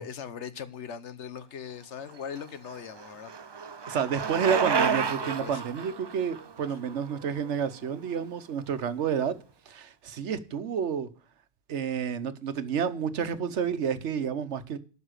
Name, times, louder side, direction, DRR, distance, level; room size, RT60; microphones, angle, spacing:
voice 1, 0.0-3.4 5.2-5.6, left 7 dB, 80° left, 1.3 m, -40 dB
Bicycle, 2.2-8.1, right 5 dB, 45° right, 0.3 m, -31 dB
voice 2, 3.9-9.3 9.7-11.1 11.7-14.8, right 7 dB, 85° right, 1.2 m, -30 dB
12.5 x 5.5 x 6.4 m
omnidirectional pair, 1.2 m